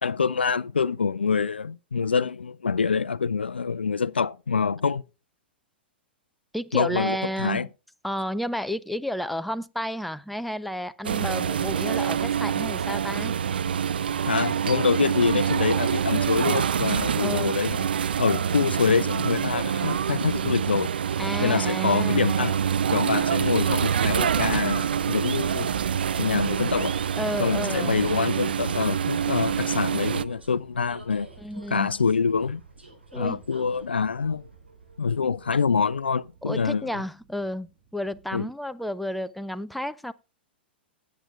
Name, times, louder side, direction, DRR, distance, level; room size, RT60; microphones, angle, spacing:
voice 1, 0.0-5.0 6.7-7.7 14.3-17.9 18.2-20.9 21.4-22.6 22.9-25.7 26.2-27.0 27.4-31.3 31.7-32.6 33.1-34.4 35.0-36.9 38.3-38.5, left 5 dB, 75° left, 0.4 m, -25 dB
voice 2, 6.5-7.6 8.0-13.4 17.2-17.5 21.2-22.6 27.1-28.0 31.4-31.9 33.1-33.4 36.4-40.1, equal, ahead, 0.4 m, -31 dB
sound 1, 11.0-30.2, right 8 dB, 65° right, 0.4 m, -26 dB
Vehicle, 26.6-36.3, right 2 dB, 85° right, 3.9 m, -52 dB
sound 2, 32.1-38.4, right 7 dB, 45° right, 2.0 m, -47 dB
17.0 x 8.4 x 2.4 m
figure-of-eight pair, 100°, 6 cm